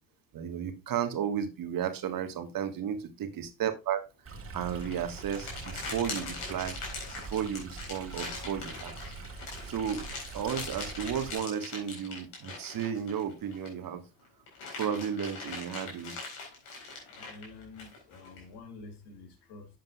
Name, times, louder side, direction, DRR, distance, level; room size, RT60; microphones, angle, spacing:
voice 1, 0.3-4.0 4.5-6.8 7.2-8.9 9.6-10.1 10.3-14.0 14.8-16.2, right 8 dB, 45° right, 1.5 m, -33 dB
Stream, 4.3-11.4, right 3 dB, 30° right, 2.2 m, -44 dB
sound 1, 4.6-13.9 14.2-18.4, left 3 dB, 75° left, 4.4 m, -41 dB
voice 2, 17.1-19.7, left 3 dB, 60° left, 2.6 m, -48 dB
11.0 x 7.5 x 2.3 m
hypercardioid pair, 60°, 46 cm